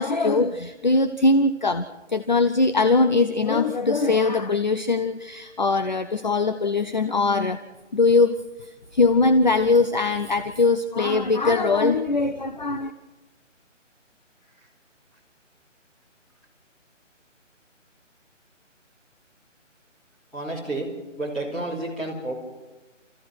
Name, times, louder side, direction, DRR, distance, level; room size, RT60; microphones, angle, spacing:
voice 1, 0.0-7.6 7.9-8.3 8.9-12.9, left 3 dB, 35° left, 10 dB, 0.7 m, -21 dB
voice 2, 20.3-20.9 21.2-22.3, right 2 dB, ahead, -10 dB, 3.3 m, -30 dB
29.0 x 15.0 x 6.3 m, 1.2 s
figure-of-eight pair, 170°, 38 cm